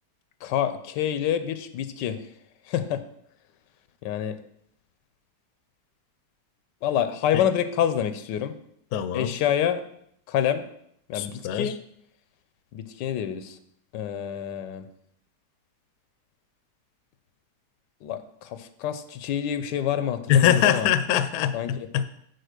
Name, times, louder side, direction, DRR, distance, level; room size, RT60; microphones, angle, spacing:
voice 1, 0.4-2.2 2.7-3.0 4.0-4.4 6.8-8.5 9.1-9.8 10.3-10.6 11.1-11.7 12.7-13.6 13.9-14.9 18.0-20.9 21.5-21.9, left 9 dB, 85° left, 11 dB, 1.3 m, -27 dB
voice 2, 8.9-9.3 11.1-11.7 20.3-22.1, left 10 dB, 70° left, 12 dB, 1.0 m, -23 dB
6.6 x 4.5 x 6.5 m, 0.70 s
omnidirectional pair, 1.8 m